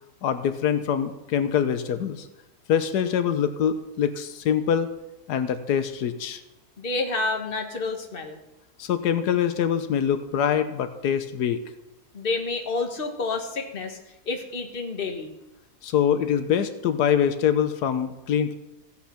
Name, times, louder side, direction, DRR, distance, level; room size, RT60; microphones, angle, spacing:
voice 1, 0.2-2.3 2.7-4.9 5.3-6.4 8.8-11.6 15.8-18.5, left 8 dB, 90° left, 10 dB, 1.4 m, -24 dB
voice 2, 6.8-8.4 12.1-14.0 14.2-15.3, left 3 dB, 35° left, 3 dB, 1.6 m, -29 dB
15.5 x 8.3 x 5.7 m, 0.93 s
omnidirectional pair, 1.7 m